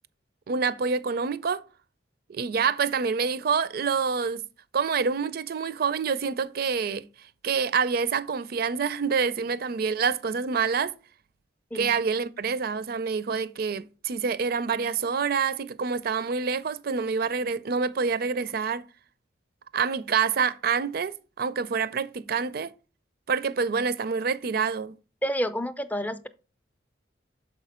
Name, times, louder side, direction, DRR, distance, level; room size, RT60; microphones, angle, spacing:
voice 1, 0.5-1.6 2.3-4.4 4.7-10.9 11.7-18.8 19.7-22.7 23.3-24.9, right 5 dB, 55° right, 0.4 m, -27 dB
voice 2, 25.2-26.3, equal, 10° left, 0.4 m, -29 dB
6.6 x 4.9 x 4.2 m
head